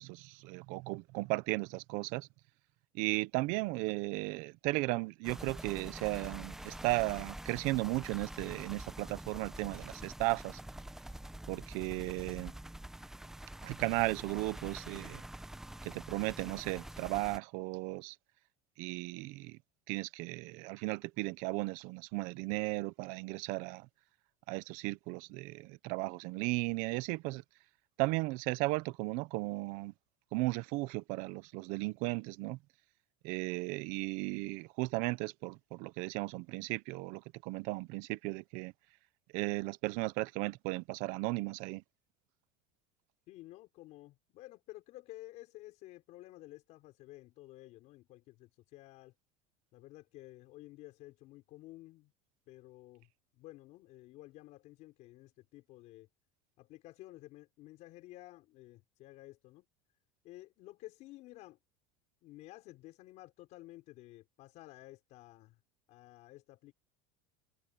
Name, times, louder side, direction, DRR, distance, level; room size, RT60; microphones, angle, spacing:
voice 1, 0.0-2.3 2.9-10.6 11.5-12.5 13.6-15.2 15.8-18.2 18.8-19.6 19.9-23.9 24.5-27.4 28.0-29.9 30.3-32.6 33.2-38.7 39.3-41.8, right 23 dB, 55° right, 0.7 m, -35 dB
sound 1, 5.2-17.4, right 1 dB, 5° right, 0.8 m, -46 dB
voice 2, 43.3-49.1 49.7-52.1 52.5-53.1 53.4-56.1 56.6-59.6 60.2-61.6 62.2-65.6 65.9-66.7, left 17 dB, 45° left, 5.4 m, -53 dB
cardioid pair, 165°, 16 cm